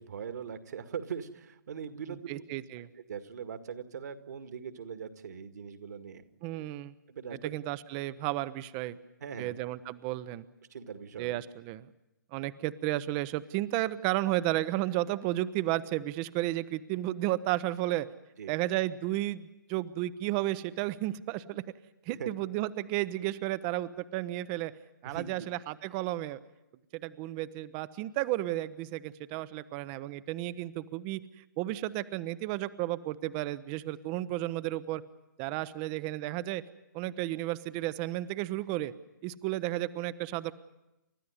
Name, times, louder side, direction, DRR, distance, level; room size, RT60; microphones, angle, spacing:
voice 1, 0.0-2.4 3.1-6.2 7.1-7.5 9.2-9.6 10.7-11.4 18.4-18.5 22.1-22.3 25.0-25.5, right 7 dB, 55° right, 9 dB, 1.9 m, -41 dB
voice 2, 2.3-2.9 6.4-6.9 7.4-9.0 9.4-10.4 11.2-11.9 12.3-18.1 18.5-21.6 22.1-24.7 25.0-26.4 27.0-35.0 35.4-36.6 36.9-38.9 39.2-40.5, right 16 dB, 25° right, 15 dB, 0.7 m, -33 dB
30.0 x 13.5 x 9.7 m, 0.96 s
figure-of-eight pair, 130°, 11 cm